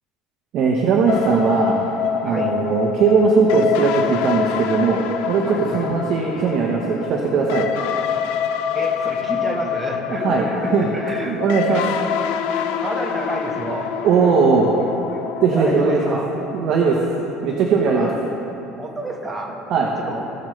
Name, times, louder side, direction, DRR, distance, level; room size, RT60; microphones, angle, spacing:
voice 1, 0.5-1.8 2.2-5.0 5.3-7.7 10.1-10.9 11.2-11.8 14.0-14.7 15.4-16.2 16.5-17.0 17.4-18.1 19.7-19.9, right 5 dB, 45° right, -1 dB, 1.0 m, -19 dB
sound 1, 1.1-16.6, left 8 dB, 85° left, 0.6 m, -26 dB
voice 2, 2.2-2.6 5.5-5.9 8.7-11.4 11.7-11.8 12.8-13.9 14.2-14.3 14.9-16.3 17.9-18.1 18.8-20.3, right 1 dB, 10° right, -1 dB, 1.3 m, -30 dB
18.5 x 6.5 x 3.2 m, 3.0 s
cardioid pair, 160°, 0 cm